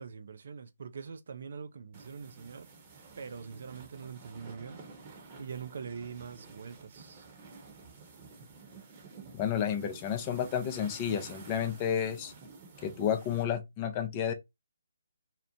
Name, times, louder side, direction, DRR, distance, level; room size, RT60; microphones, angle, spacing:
voice 1, 0.0-2.7 3.2-4.8 5.4-7.3, right 6 dB, 60° right, 0.4 m, -43 dB
sound 1, 1.9-13.4, right 4 dB, 30° right, 0.9 m, -51 dB
voice 2, 9.3-12.3 12.8-14.3, left 9 dB, 25° left, 0.5 m, -31 dB
2.8 x 2.0 x 2.5 m
figure-of-eight pair, 145°, 0 cm